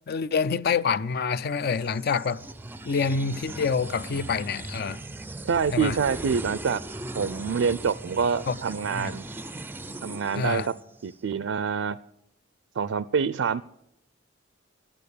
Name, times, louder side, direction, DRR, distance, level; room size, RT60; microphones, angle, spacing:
voice 1, 0.1-2.4 2.8-5.0 5.7-6.0 8.5-8.6 8.9-9.1 10.3-10.7, left 5 dB, 55° left, 0.5 m, -26 dB
sound 1, 1.5-11.2, right 2 dB, 10° right, 0.4 m, -39 dB
voice 2, 5.5-6.8 7.2-9.2 10.0-10.7 11.0-12.0 12.8-13.6, right 6 dB, 80° right, 0.4 m, -26 dB
12.5 x 8.7 x 8.3 m
head